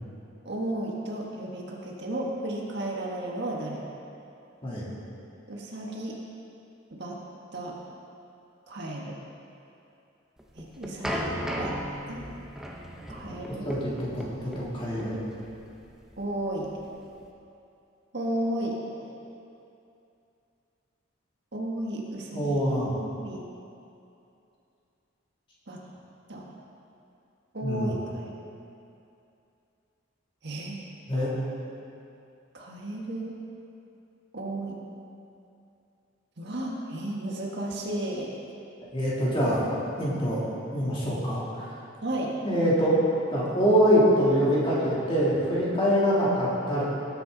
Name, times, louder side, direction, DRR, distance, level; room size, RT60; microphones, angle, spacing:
voice 1, 0.4-3.9 5.5-6.2 6.9-7.2 7.5-7.8 8.7-9.1 10.5-11.2 11.6-11.7 12.1-12.2 13.1-13.7 16.2-16.7 18.1-19.1 21.5-22.6 22.9-23.4 25.7-25.8 26.3-26.4 27.5-28.3 30.4-30.8 32.5-33.3 34.3-34.8 36.4-38.3 42.0-42.3, right 1 dB, 55° right, -2 dB, 1.6 m, -33 dB
sound 1, 10.4-17.2, equal, 5° right, 0.9 m, -36 dB
voice 2, 13.6-15.1 22.3-22.9 27.6-27.9 31.1-31.3 38.9-39.6 40.0-40.4 40.7-41.4 42.4-43.0 43.3-46.8, equal, 25° left, -8 dB, 3.3 m, -24 dB
18.5 x 9.0 x 4.0 m, 2.7 s
head